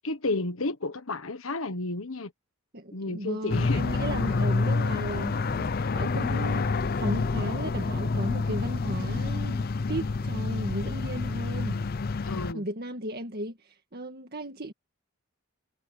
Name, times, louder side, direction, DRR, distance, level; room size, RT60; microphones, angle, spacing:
voice 1, 0.0-2.3 2.9-3.8 4.2-4.5 12.2-12.6, left 2 dB, 75° left, 1.3 m, -32 dB
voice 2, 2.7-11.8 12.5-14.7, right 1 dB, 50° right, 1.9 m, -35 dB
sound 1, 3.5-12.5, left 3 dB, 45° left, 0.5 m, -28 dB
head